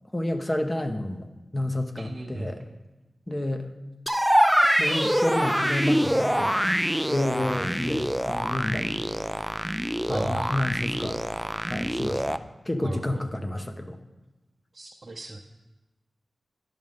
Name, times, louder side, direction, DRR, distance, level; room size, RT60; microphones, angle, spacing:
voice 1, 0.1-2.7 3.3-3.7 4.8-6.6 7.1-9.0 10.1-11.2 11.5-12.4 12.7-14.0, left 1 dB, 25° left, 6 dB, 0.8 m, -30 dB
voice 2, 2.0-2.5 10.1-10.6 12.8-13.2 14.7-15.4, right 2 dB, 55° right, 0 dB, 0.6 m, -36 dB
sound 1, 4.1-12.4, equal, 5° right, 0.3 m, -25 dB
10.5 x 6.3 x 3.6 m, 1.1 s
wide cardioid pair, 65°, 0 cm